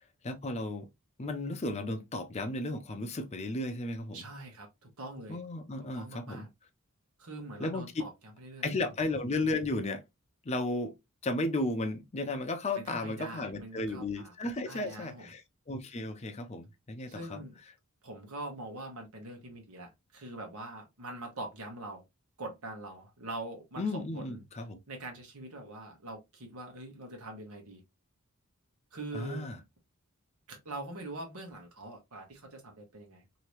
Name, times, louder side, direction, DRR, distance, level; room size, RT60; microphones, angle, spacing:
voice 1, 0.2-0.9 1.2-4.2 5.3-6.5 7.6-7.9 8.6-10.0 10.4-10.9 11.2-15.4 15.7-17.4 23.8-24.8 29.1-29.6, left 2 dB, 30° left, 0.5 m, -34 dB
voice 2, 4.1-5.4 5.9-6.5 7.2-8.9 12.7-14.3 14.7-15.3 17.1-17.6 18.0-22.0 22.4-24.4 24.9-27.8 28.9-29.5 30.5-33.2, right 2 dB, 85° right, 1.2 m, -43 dB
3.0 x 2.7 x 3.1 m
head